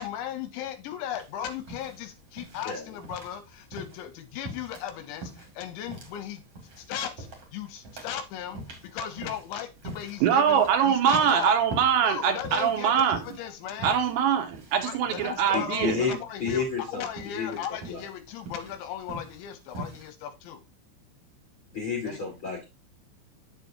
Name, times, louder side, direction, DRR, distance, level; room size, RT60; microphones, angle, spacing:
voice 1, 0.0-6.4 6.8-11.5 12.0-14.0 14.8-20.6 22.1-22.2, left 9 dB, 80° left, 2.9 m, -37 dB
sound 1, 1.2-20.1, right 1 dB, 50° right, 2.0 m, -44 dB
voice 2, 10.2-13.2 13.8-16.0, right 8 dB, 75° right, 3.0 m, -23 dB
voice 3, 15.5-17.0 17.3-17.5 17.9-18.0 21.7-22.6, left 5 dB, 50° left, 1.5 m, -30 dB
8.1 x 7.2 x 2.7 m
omnidirectional pair, 5.6 m